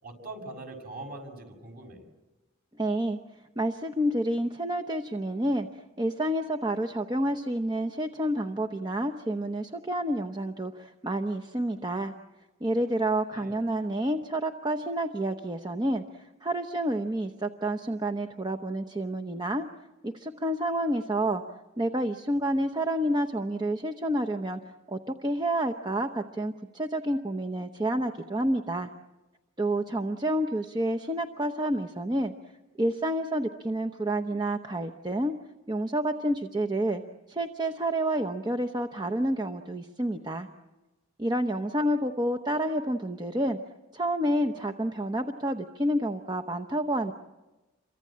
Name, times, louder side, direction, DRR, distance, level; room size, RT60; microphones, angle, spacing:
voice 1, 0.0-2.0 13.3-13.5, right 2 dB, 45° right, 4 dB, 6.2 m, -42 dB
voice 2, 2.8-3.2 3.6-12.1 12.6-19.7 20.0-21.4 21.8-24.6 24.9-28.9 29.6-32.3 32.8-35.3 35.7-37.0 37.3-40.5 41.2-43.6 43.9-47.1, right 1 dB, 20° right, 6 dB, 0.9 m, -29 dB
28.5 x 24.0 x 8.6 m, 1.1 s
head